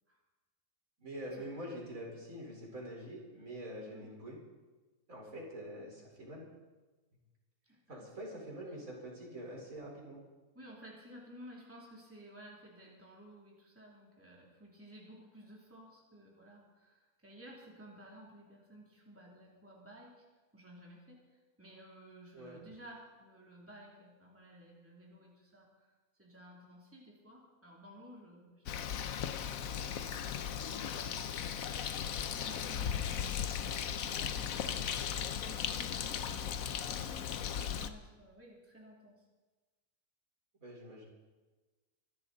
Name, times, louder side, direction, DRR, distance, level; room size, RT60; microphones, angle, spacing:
voice 1, 1.0-4.4 5.1-6.5 7.9-10.2 22.3-22.6 40.6-41.1, equal, 65° right, -3 dB, 4.9 m, -45 dB
voice 2, 10.5-20.2 20.5-31.3 32.2-33.5 34.3-36.5 37.5-39.2, equal, 10° right, -3 dB, 2.8 m, -55 dB
Bird, 28.7-37.9, left 8 dB, 70° left, 1.2 m, -37 dB
24.5 x 13.0 x 4.1 m, 1.2 s
omnidirectional pair, 1.5 m